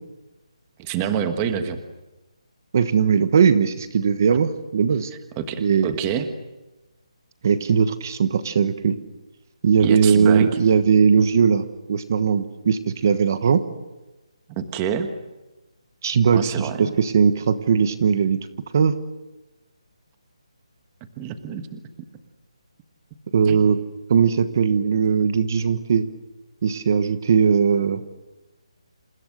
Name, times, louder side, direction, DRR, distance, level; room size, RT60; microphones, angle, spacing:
voice 1, 0.8-1.8 5.4-6.3 9.8-10.5 14.5-15.1 16.3-16.9 21.2-21.8 23.4-23.6, right 8 dB, 15° right, 8 dB, 1.2 m, -27 dB
voice 2, 2.7-5.1 5.6-5.9 7.4-9.0 9.6-13.6 16.0-18.5 18.7-18.9 23.3-23.8 24.1-26.1 26.6-28.0, right 6 dB, 30° right, 12 dB, 1.2 m, -19 dB
28.5 x 28.5 x 6.5 m, 1.1 s
hypercardioid pair, 175°, 3 cm